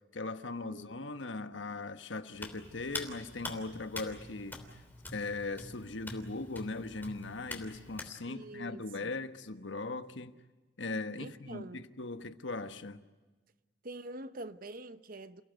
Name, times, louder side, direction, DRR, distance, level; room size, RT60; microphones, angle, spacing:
voice 1, 0.1-4.8 5.1-10.4 10.8-13.0, left 3 dB, 85° left, 1.3 m, -39 dB
voice 2, 0.7-1.0 8.3-9.1 11.2-11.8 13.8-15.4, right 2 dB, 50° right, 1.0 m, -45 dB
Hands, 2.4-8.1, left 2 dB, 10° left, 3.2 m, -45 dB
29.0 x 17.0 x 9.3 m
head